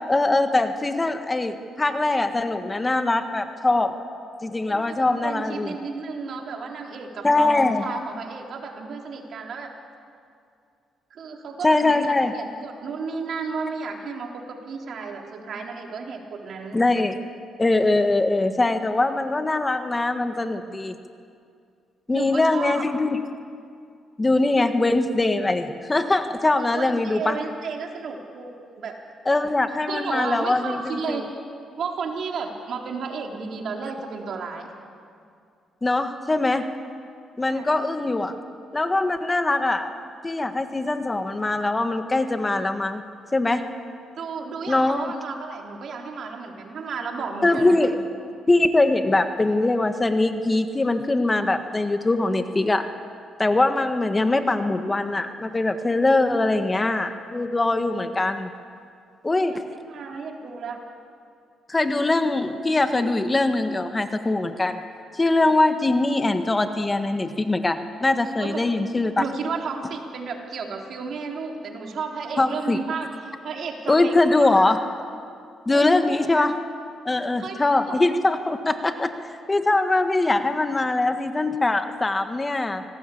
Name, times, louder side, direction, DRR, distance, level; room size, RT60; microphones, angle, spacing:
voice 1, 0.0-3.9 4.4-5.7 7.2-7.8 11.6-12.3 16.7-17.2 17.6-20.9 22.1-23.2 24.2-27.4 29.2-31.2 35.8-36.7 37.4-38.4 38.7-39.9 40.2-43.0 43.3-43.6 44.7-45.1 47.4-47.9 48.5-52.9 53.4-58.5 59.2-59.6 61.7-64.8 65.1-69.2 72.4-72.8 73.9-74.8 75.6-76.5 77.0-79.1 79.5-82.8, left 2 dB, 20° left, 8 dB, 1.5 m, -22 dB
voice 2, 4.7-9.7 11.1-16.8 22.1-22.8 26.7-29.0 29.9-31.2 31.8-34.7 37.4-37.7 44.2-47.8 59.4-60.8 68.4-68.7 69.2-74.7 75.7-76.2 77.4-78.0, right 5 dB, 60° right, 1 dB, 3.6 m, -33 dB
26.0 x 19.0 x 8.6 m, 2.3 s
cardioid pair, 90°, 0 cm